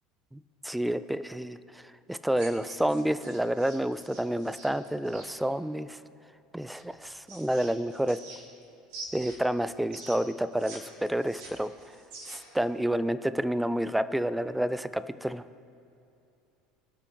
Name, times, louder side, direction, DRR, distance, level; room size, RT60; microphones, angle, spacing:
voice 1, 0.3-1.8 2.1-6.0 6.5-8.2 9.1-11.7 12.3-15.4, right 1 dB, 5° right, 14 dB, 0.5 m, -29 dB
sound 1, 2.4-5.3 6.8-8.6 8.9-10.8 11.1-12.6, right 3 dB, 55° right, 2.9 m, -46 dB
23.5 x 8.4 x 3.1 m, 2.7 s
figure-of-eight pair, 70°, 0 cm